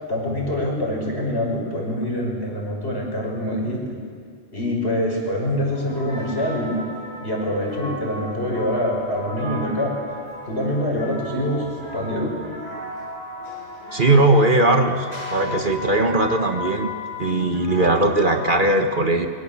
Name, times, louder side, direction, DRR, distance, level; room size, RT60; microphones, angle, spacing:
voice 1, 0.1-3.8 4.5-6.8 7.2-10.0 10.4-11.7 11.9-12.4, left 1 dB, 55° left, -1 dB, 6.3 m, -25 dB
sound 1, 5.7-18.5, left 1 dB, 30° left, 8.1 m, -35 dB
voice 2, 13.9-16.9 17.2-19.3, right 2 dB, 45° right, 5 dB, 1.6 m, -19 dB
26.0 x 24.0 x 7.3 m, 2.1 s
omnidirectional pair, 1.3 m